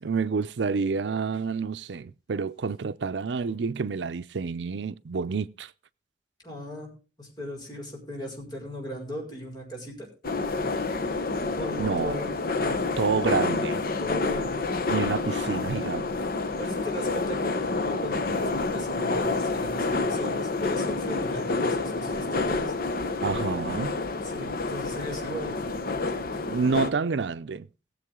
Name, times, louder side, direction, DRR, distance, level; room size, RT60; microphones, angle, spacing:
voice 1, 0.0-5.7 11.8-12.2 13.0-13.8 14.9-16.2 23.2-24.0 26.5-27.7, right 5 dB, 85° right, 0.5 m, -28 dB
voice 2, 6.4-6.9 7.2-10.1 11.6-12.3 12.6-12.8 14.0-14.6 16.6-17.5 17.8-22.7 24.2-25.6, left 1 dB, 25° left, 5.4 m, -37 dB
sound 1, 10.2-26.9, left 3 dB, 55° left, 0.9 m, -28 dB
19.0 x 7.6 x 3.7 m
head